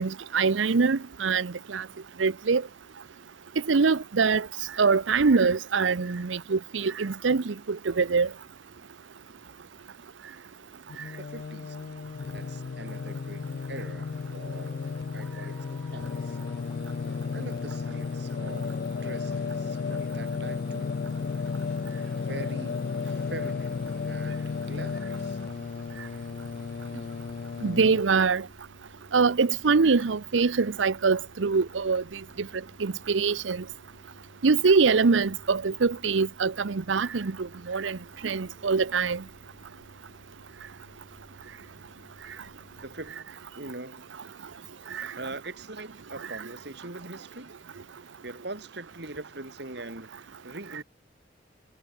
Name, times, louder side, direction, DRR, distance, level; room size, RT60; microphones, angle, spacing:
voice 1, 0.0-1.9 2.2-2.7 3.7-4.5 4.8-8.3 27.6-28.5 29.1-32.5 32.8-33.6 34.4-38.0 38.2-39.2 44.9-45.1, right 4 dB, 90° right, 0.7 m, -24 dB
Singing, 10.9-28.0, left 5 dB, 55° left, 0.3 m, -33 dB
voice 2, 11.2-11.8 12.3-14.8 15.1-16.4 17.0-20.9 22.1-25.4 42.8-43.3 43.6-44.2 45.1-47.5 48.2-50.8, right 2 dB, 60° right, 2.8 m, -42 dB
sound 1, 13.9-27.7, left 1 dB, 5° left, 7.0 m, -60 dB
sound 2, 23.3-43.1, equal, 75° left, 5.2 m, -55 dB
head